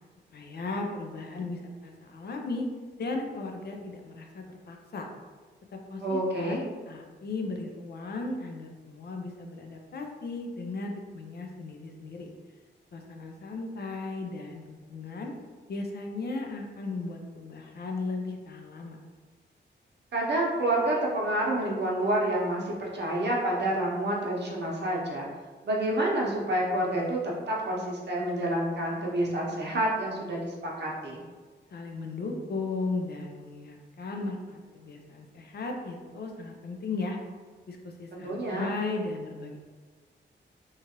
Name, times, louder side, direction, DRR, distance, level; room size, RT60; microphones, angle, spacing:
voice 1, 0.3-2.6 3.0-5.1 5.7-12.3 12.9-14.6 14.9-15.3 15.7-19.0 31.7-37.2 37.7-39.6, left 3 dB, 55° left, 2 dB, 0.4 m, -36 dB
voice 2, 6.0-6.6 20.1-25.3 25.6-27.2 27.5-31.2 38.1-38.7, right 1 dB, 60° right, -3 dB, 0.7 m, -28 dB
2.9 x 2.4 x 2.8 m, 1.4 s
wide cardioid pair, 120°, 20 cm